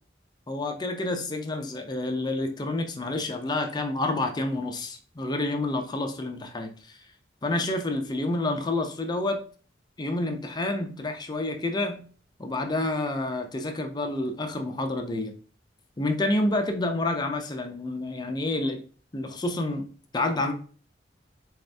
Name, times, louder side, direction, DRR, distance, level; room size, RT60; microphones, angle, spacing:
voice 1, 0.5-6.7 7.4-9.4 10.0-12.1 12.4-15.3 16.0-18.8 19.1-19.9 20.1-20.5, left 2 dB, 25° left, 5 dB, 0.4 m, -28 dB
4.2 x 2.6 x 3.3 m, 0.41 s
head